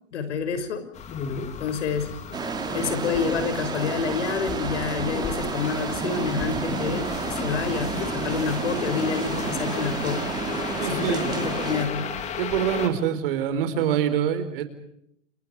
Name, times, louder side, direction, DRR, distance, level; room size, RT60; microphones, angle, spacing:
voice 1, 0.1-0.9 1.6-2.2 2.7-10.3 10.9-12.1, left 6 dB, 65° left, 11 dB, 6.0 m, -28 dB
sound 1, 0.9-12.9, left 6 dB, 20° left, 2.8 m, -35 dB
sound 2, 2.3-11.9, right 5 dB, 10° right, 3.1 m, -30 dB
voice 2, 10.8-11.3 12.4-14.6, right 9 dB, 45° right, 11 dB, 4.5 m, -25 dB
30.0 x 29.0 x 4.8 m, 0.72 s
hypercardioid pair, 155°, 37 cm